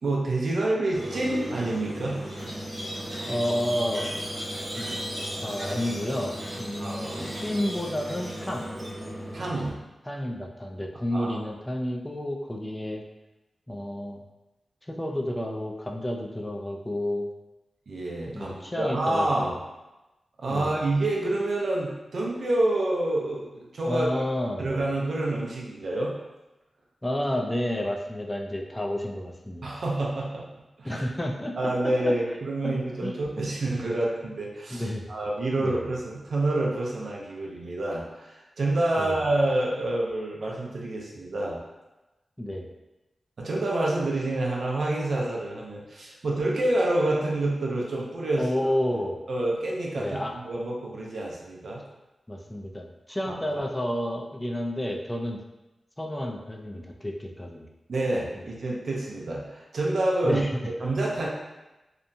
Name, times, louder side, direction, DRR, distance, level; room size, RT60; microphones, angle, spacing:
voice 1, 0.0-2.2 6.8-7.3 9.3-9.7 11.1-11.4 17.9-19.5 20.4-24.1 24.6-26.1 29.6-30.4 30.8-31.0 31.6-41.6 43.4-48.5 49.3-51.8 53.3-53.6 57.9-60.4 60.8-61.3, right 2 dB, 70° right, -3 dB, 0.5 m, -28 dB
Squeak, 0.9-9.7, equal, 50° right, 0.9 m, -35 dB
voice 2, 3.3-4.1 4.8-4.9 5.4-7.1 7.4-8.6 10.1-13.0 13.7-14.2 14.9-17.3 18.3-19.6 20.5-20.7 23.8-24.7 27.0-29.7 30.8-32.2 32.6-32.8 33.0-33.2 34.7-35.0 35.6-35.8 39.0-39.2 42.4-42.7 48.4-49.2 50.0-50.4 52.3-55.4 56.0-57.7 60.2-60.5, left 1 dB, 15° left, 1 dB, 0.4 m, -30 dB
2.8 x 2.1 x 2.6 m, 1.0 s
cardioid pair, 70°, 0 cm